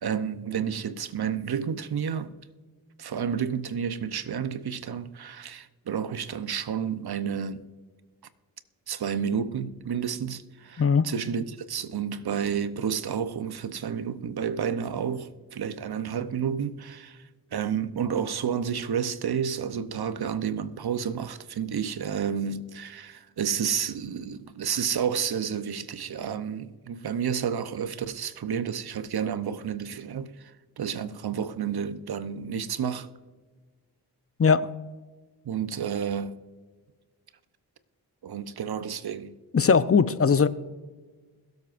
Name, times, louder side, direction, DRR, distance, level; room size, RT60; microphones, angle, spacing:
voice 1, 0.0-2.3 3.0-7.6 8.9-17.2 17.5-30.3 30.8-33.1 35.5-36.3 38.2-39.3, right 7 dB, 65° right, 0.9 m, -30 dB
voice 2, 10.8-11.1 34.4-34.7 39.5-40.5, left 5 dB, 35° left, 0.7 m, -20 dB
21.5 x 8.0 x 2.6 m
cardioid pair, 40°, 41 cm